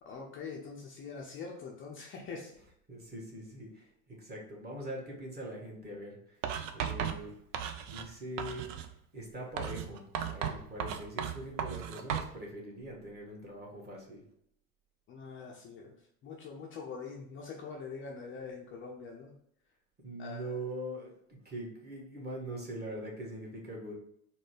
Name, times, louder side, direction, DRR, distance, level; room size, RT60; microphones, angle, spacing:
voice 1, 0.0-2.6 15.1-19.3 20.2-20.5, left 5 dB, 30° left, 0 dB, 0.6 m, -44 dB
voice 2, 2.9-6.4 6.7-7.4 7.9-8.7 9.1-14.2 20.0-23.9, right 1 dB, 25° right, -3 dB, 1.6 m, -42 dB
Writing, 6.4-8.1 8.4-8.9 9.6-12.3, right 8 dB, 60° right, 0.6 m, -36 dB
4.1 x 2.2 x 4.6 m, 0.71 s
hypercardioid pair, 80°, 42 cm